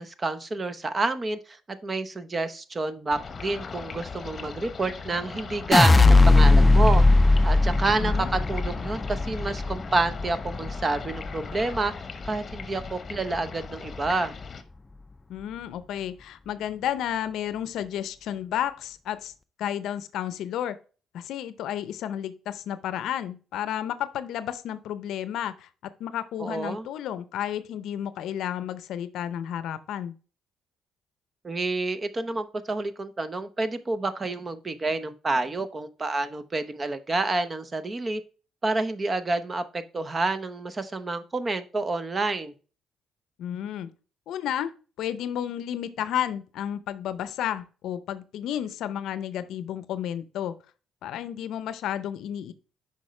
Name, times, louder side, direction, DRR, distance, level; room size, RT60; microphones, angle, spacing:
voice 1, 0.0-7.0 7.4-11.9 12.3-14.3 26.4-26.9 31.4-38.2 38.6-42.5, right 2 dB, 30° right, 12 dB, 0.8 m, -28 dB
sound 1, 3.1-14.6, left 5 dB, 40° left, 0.9 m, -39 dB
sound 2, 5.7-11.9 12.3-12.9, left 2 dB, 25° left, 0.4 m, -19 dB
voice 2, 15.3-19.3 19.6-20.8 21.1-25.7 26.0-30.1 43.4-43.9 44.3-50.5 51.0-52.5, left 10 dB, 80° left, 14 dB, 0.6 m, -32 dB
6.3 x 5.3 x 3.2 m, 0.35 s
cardioid pair, 75°, 0 cm